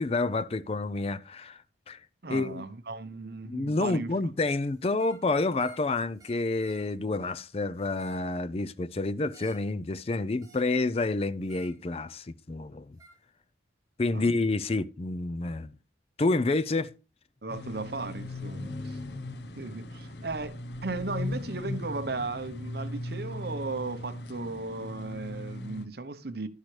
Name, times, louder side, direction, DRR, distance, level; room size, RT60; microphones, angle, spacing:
voice 1, 0.0-2.0 2.3-2.6 3.4-13.0 14.0-15.7 16.2-16.9, left 3 dB, 30° left, 0.4 m, -29 dB
voice 2, 2.2-4.1 14.1-14.4 17.4-19.0 19.6-26.5, right 3 dB, 55° right, 0.9 m, -36 dB
sound 1, 4.9-5.2 5.6-5.9 6.2-6.9 7.8-8.3 9.3-9.7 10.4-10.8 11.4-11.8 13.0-13.2, right 3 dB, 20° right, 2.8 m, -54 dB
sound 2, 17.5-25.9, left 2 dB, 60° left, 0.9 m, -38 dB
12.0 x 10.5 x 3.2 m
head